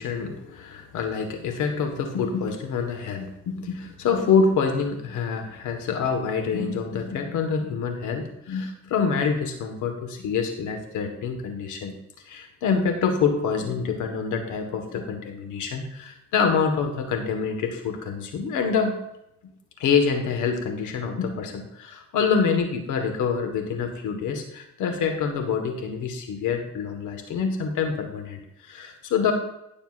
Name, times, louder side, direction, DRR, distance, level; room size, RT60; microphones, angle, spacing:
voice 1, 0.0-11.9 12.3-19.0 19.8-29.3, left 5 dB, 85° left, 5 dB, 1.6 m, -26 dB
15.5 x 7.0 x 2.5 m, 0.82 s
cardioid pair, 90°, 30 cm